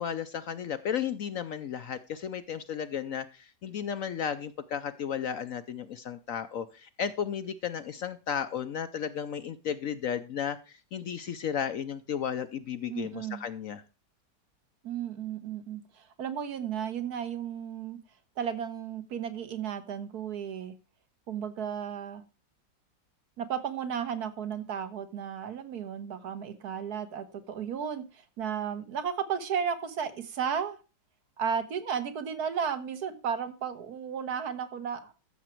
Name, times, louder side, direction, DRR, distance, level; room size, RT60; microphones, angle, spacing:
voice 1, 0.0-13.8, left 8 dB, 65° left, 12 dB, 0.9 m, -34 dB
voice 2, 12.9-13.4 14.8-18.0 18.4-20.7 21.3-22.2 23.4-30.8 31.4-35.1, right 7 dB, 60° right, 11 dB, 1.8 m, -34 dB
14.0 x 7.3 x 4.5 m, 0.32 s
omnidirectional pair, 1.9 m